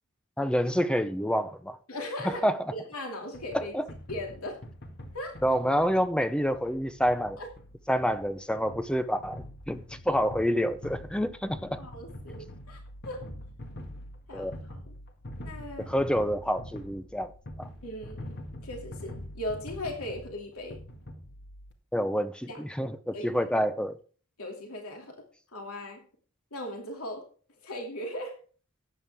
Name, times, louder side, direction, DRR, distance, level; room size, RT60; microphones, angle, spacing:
voice 1, 0.4-1.8 2.2-2.6 3.5-3.8 5.4-7.4 7.9-11.8 14.3-14.5 15.8-17.3 17.6-17.7 21.9-24.0, equal, 5° left, 0.6 m, -28 dB
voice 2, 1.9-2.4 2.7-3.7 4.1-4.6 5.1-5.4 7.4-7.5 11.8-13.3 14.3-14.9 15.4-15.9 17.8-20.8 22.5-22.6 23.1-23.5 24.4-25.2 25.5-26.0 26.5-27.3 27.6-28.4, left 1 dB, 75° left, 2.8 m, -38 dB
sound 1, 3.3-21.7, left 1 dB, 50° left, 1.9 m, -44 dB
14.0 x 9.3 x 3.5 m
head